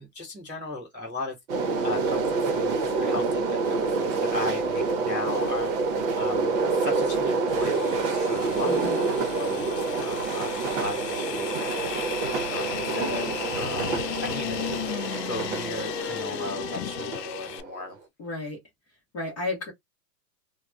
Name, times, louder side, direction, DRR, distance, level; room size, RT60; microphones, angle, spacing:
voice 1, 0.0-8.7 9.3-17.9, left 2 dB, 5° right, 0.4 m, -37 dB
sound 1, 1.5-17.9, right 4 dB, 45° right, 0.8 m, -27 dB
sound 2, 7.5-17.6, left 11 dB, 85° left, 0.7 m, -35 dB
voice 2, 8.5-9.1 18.2-18.6 19.1-19.7, left 2 dB, 20° left, 0.8 m, -33 dB
2.2 x 2.2 x 3.7 m
supercardioid pair, 175°, 48 cm